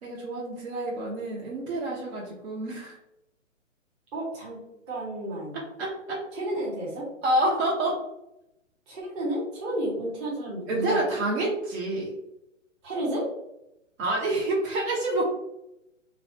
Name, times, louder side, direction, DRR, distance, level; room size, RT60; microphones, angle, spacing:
voice 1, 0.0-3.0 5.8-6.2 7.2-8.0 10.7-12.1 14.0-15.3, right 1 dB, 55° right, -4 dB, 0.8 m, -28 dB
voice 2, 4.1-4.6 4.9-5.6 6.3-7.1 8.9-11.0 12.8-13.3, right 1 dB, 20° right, -6 dB, 0.8 m, -31 dB
2.5 x 2.1 x 2.6 m, 0.86 s
hypercardioid pair, 135°, 39 cm